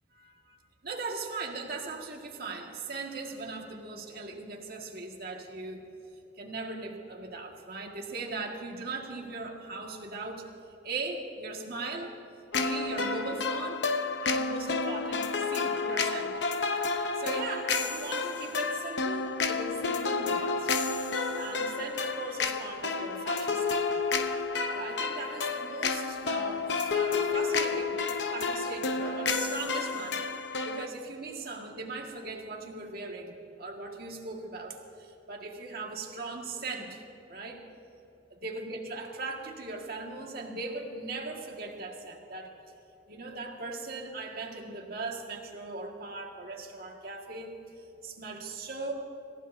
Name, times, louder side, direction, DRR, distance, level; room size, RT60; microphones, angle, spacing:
voice 1, 0.1-0.6 0.8-5.9 6.4-10.5 10.8-12.2 12.6-13.8 14.2-16.4 16.8-20.8 21.4-24.1 24.7-28.0 28.3-30.2 30.6-37.0 37.3-37.6 38.3-42.5 43.1-47.6 48.0-48.9, right 3 dB, 55° right, 1 dB, 1.8 m, -39 dB
sound 1, 12.5-30.9, left 4 dB, 65° left, 0.8 m, -30 dB
27.5 x 15.5 x 2.7 m, 2.9 s
head